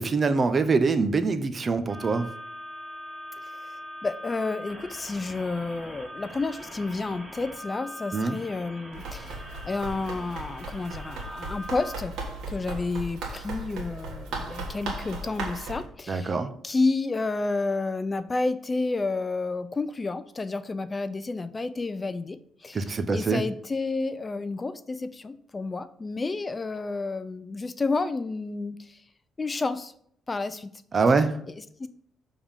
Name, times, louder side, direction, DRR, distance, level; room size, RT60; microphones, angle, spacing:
voice 1, 0.0-2.3 8.1-8.4 16.1-16.5 22.7-23.4 30.9-31.4, right 4 dB, 35° right, 10 dB, 0.6 m, -24 dB
sound 1, 1.9-11.9, equal, 15° right, 2.4 m, -42 dB
voice 2, 3.4-12.2 12.5-16.4 16.6-29.0 29.4-29.9 30.3-30.7 31.5-31.9, left 3 dB, 25° left, 13 dB, 0.4 m, -30 dB
Run, 8.9-15.8, right 2 dB, 85° right, 1.5 m, -37 dB
6.9 x 3.6 x 5.5 m, 0.66 s
cardioid pair, 90°, 0 cm